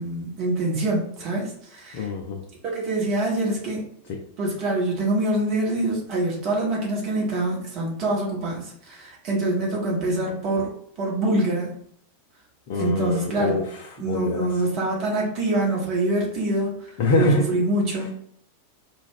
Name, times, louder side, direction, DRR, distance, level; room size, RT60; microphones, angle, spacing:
voice 1, 0.0-2.1 2.6-3.9 4.4-10.7 11.0-11.7 12.7-13.6 14.0-18.2, right 2 dB, 40° right, -2 dB, 0.9 m, -25 dB
voice 2, 1.9-2.4 4.1-4.2 12.7-14.5 17.0-17.5, left 2 dB, 50° left, 0 dB, 0.4 m, -24 dB
2.2 x 2.2 x 3.4 m, 0.66 s
figure-of-eight pair, 90°, 0 cm